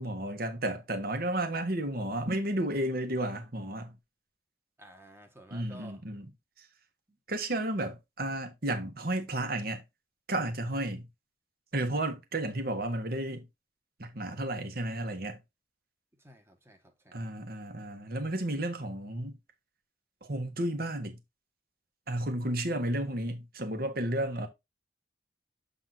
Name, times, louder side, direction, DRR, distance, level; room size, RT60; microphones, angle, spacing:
voice 1, 0.0-4.0 5.5-6.3 7.3-9.8 10.3-11.1 11.7-13.5 14.0-15.4 17.1-19.4 20.2-21.2 22.1-24.5, right 1 dB, 55° right, 1.5 m, -32 dB
voice 2, 4.8-6.0 7.1-7.2 16.2-17.3, equal, 15° right, 1.4 m, -53 dB
7.6 x 3.8 x 4.0 m
head